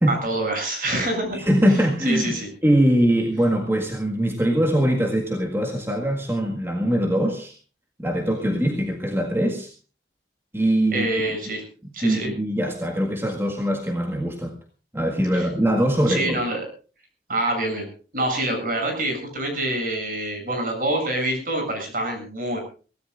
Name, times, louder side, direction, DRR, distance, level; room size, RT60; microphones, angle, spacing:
voice 1, 0.1-1.5 2.0-2.5 10.9-11.6 11.9-12.3 15.3-15.5 16.1-16.6 17.3-17.9 18.1-22.6, right 1 dB, 50° right, 3 dB, 7.8 m, -26 dB
voice 2, 1.3-2.4 2.6-7.5 8.0-9.7 10.5-11.1 12.0-14.6 14.9-16.4, right 1 dB, 15° right, 0 dB, 1.8 m, -22 dB
24.0 x 17.0 x 2.5 m, 0.36 s
head